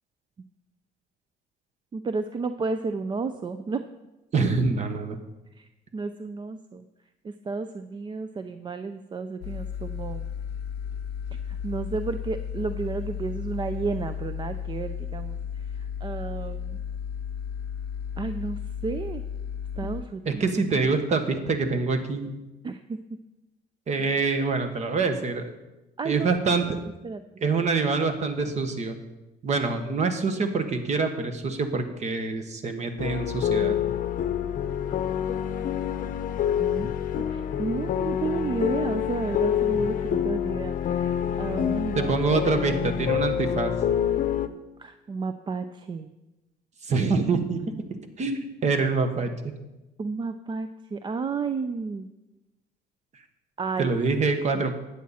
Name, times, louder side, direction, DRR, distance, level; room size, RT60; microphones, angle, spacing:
voice 1, 1.9-3.8 5.5-6.8 7.2-10.3 11.3-16.8 18.2-19.2 19.8-20.4 22.6-23.0 26.0-26.3 26.6-26.8 27.0-27.2 36.6-36.9 37.3-42.1 44.8-46.1 50.0-52.1 53.6-53.9 54.5-54.6, right 4 dB, 30° right, 10 dB, 0.4 m, -32 dB
voice 2, 4.3-5.2 19.8-19.9 20.2-22.3 23.9-25.5 26.0-26.7 27.4-29.0 29.4-33.8 41.9-43.7 46.8-47.7 48.2-49.3 53.8-54.8, right 4 dB, 45° right, 8 dB, 1.3 m, -25 dB
sound 1, 9.4-20.0, left 8 dB, 90° left, 0.6 m, -34 dB
sound 2, 33.0-44.5, left 9 dB, 55° left, 0.7 m, -27 dB
12.0 x 8.5 x 4.2 m, 1.0 s
cardioid pair, 110°, 17 cm